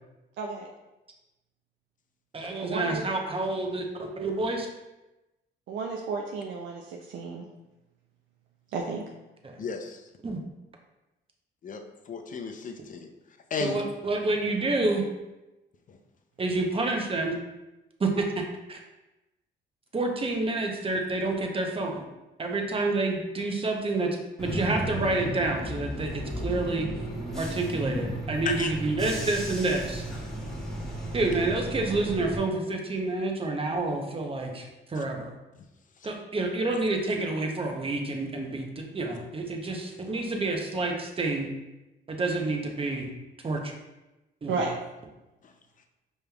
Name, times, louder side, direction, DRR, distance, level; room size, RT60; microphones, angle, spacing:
voice 1, 0.4-0.7 2.6-3.0 5.7-7.4 8.7-9.0 44.5-44.7, right 4 dB, 75° right, 1 dB, 0.4 m, -32 dB
voice 2, 2.3-4.7 9.4-9.6 10.2-10.4 13.6-15.0 16.4-17.4 18.0-18.4 18.7-18.8 19.9-22.0 22.4-24.1 24.4-26.9 27.3-30.0 31.1-35.3 36.0-41.5 42.1-43.1 43.4-43.7 44.4-44.6, right 2 dB, 30° right, 2 dB, 0.7 m, -28 dB
voice 3, 9.6-10.0 11.6-11.8 12.1-13.0 13.5-13.8 28.5-28.7, left 5 dB, 40° left, 6 dB, 0.5 m, -32 dB
Bus / Engine, 24.4-32.4, right 1 dB, ahead, 1.3 m, -34 dB
5.0 x 3.1 x 2.3 m, 1.0 s
cardioid pair, 90°, 20 cm